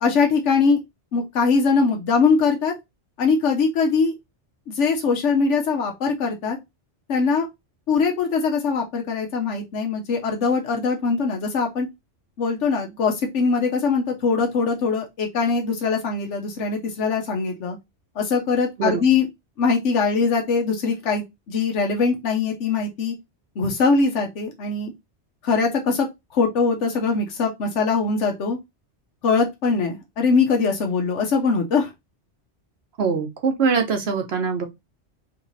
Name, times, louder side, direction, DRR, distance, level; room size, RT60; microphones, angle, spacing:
voice 1, 0.0-0.8 1.1-2.7 3.2-4.1 4.7-6.6 7.1-7.5 7.9-11.9 12.4-17.8 18.2-19.3 19.6-23.1 23.6-24.9 25.4-26.1 26.3-28.6 29.2-31.9, left 4 dB, 85° left, 1.2 m, -22 dB
voice 2, 33.0-34.7, right 5 dB, 65° right, 1.1 m, -22 dB
3.2 x 3.1 x 3.9 m
omnidirectional pair, 1.2 m